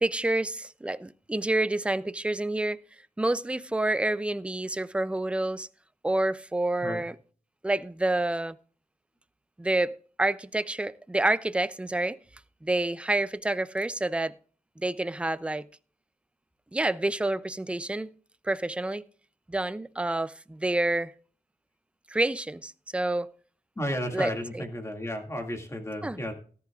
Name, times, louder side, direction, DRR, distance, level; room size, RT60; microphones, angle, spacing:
voice 1, 0.0-2.8 3.2-5.7 6.0-7.2 7.6-8.6 9.6-12.2 12.6-14.3 14.8-15.7 16.7-18.1 18.4-19.0 19.5-21.1 22.1-23.3 24.1-24.6 26.0-26.2, right 2 dB, 10° right, 0.4 m, -28 dB
voice 2, 23.8-26.3, equal, 20° left, 2.1 m, -33 dB
17.5 x 10.5 x 2.3 m
wide cardioid pair, 155°, 15 cm